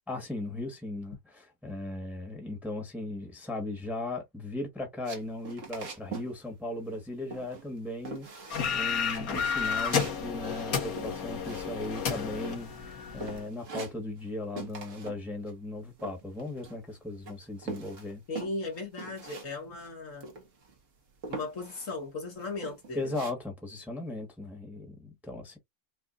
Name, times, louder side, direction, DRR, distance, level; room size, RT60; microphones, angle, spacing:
voice 1, 0.1-8.3 8.7-18.2 22.9-25.6, left 2 dB, ahead, 1.2 m, -37 dB
sound 1, 5.0-6.3 6.6-7.0 7.3-7.8 8.1-8.8 9.1-12.2 12.4-12.9 13.2-14.3 14.6-15.2 15.5-16.9 17.3-19.5 19.8-19.9 20.2-20.8 21.2-22.0 22.4-23.3, right 4 dB, 60° right, 1.6 m, -43 dB
sound 2, 8.5-13.4, left 6 dB, 80° left, 1.6 m, -31 dB
voice 2, 18.3-20.3 21.3-23.2, left 3 dB, 60° left, 1.8 m, -37 dB
5.2 x 2.4 x 2.5 m
omnidirectional pair, 1.5 m